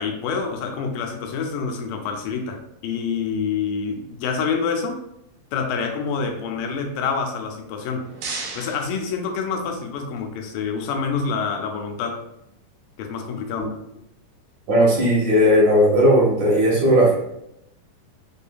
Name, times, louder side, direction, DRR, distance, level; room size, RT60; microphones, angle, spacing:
voice 1, 0.0-5.0 5.5-8.1 8.5-12.2 13.0-13.7, left 5 dB, 85° left, 4 dB, 2.3 m, -27 dB
sound 1, 7.7-9.9, right 3 dB, 85° right, 2.6 m, -36 dB
voice 2, 14.7-17.1, equal, 65° right, -5 dB, 2.4 m, -16 dB
6.8 x 2.6 x 2.2 m, 0.81 s
omnidirectional pair, 3.9 m